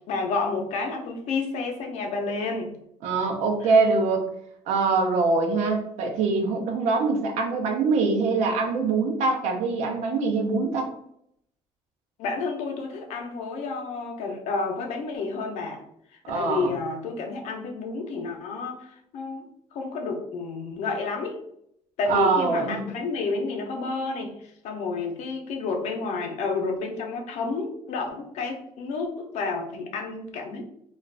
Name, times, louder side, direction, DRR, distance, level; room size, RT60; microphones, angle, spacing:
voice 1, 0.0-2.7 3.6-3.7 12.2-15.8 16.1-19.5 19.7-21.4 22.0-24.3 24.6-30.6, left 3 dB, 75° left, 2 dB, 0.6 m, -30 dB
voice 2, 3.0-4.2 4.7-10.9 16.2-16.7 22.1-22.9, right 4 dB, 80° right, 3 dB, 0.6 m, -23 dB
2.4 x 2.3 x 3.2 m, 0.74 s
cardioid pair, 170°, 12 cm